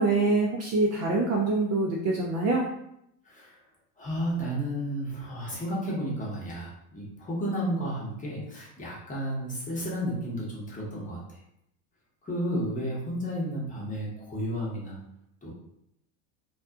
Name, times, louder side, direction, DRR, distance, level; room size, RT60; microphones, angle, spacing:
voice 1, 0.0-2.6, right 3 dB, 35° right, -2 dB, 0.4 m, -25 dB
voice 2, 3.2-3.6 4.0-11.4 12.2-15.0 15.4-15.5, equal, 15° left, -4 dB, 0.8 m, -32 dB
2.6 x 2.3 x 2.3 m, 0.77 s
supercardioid pair, 115°, 46 cm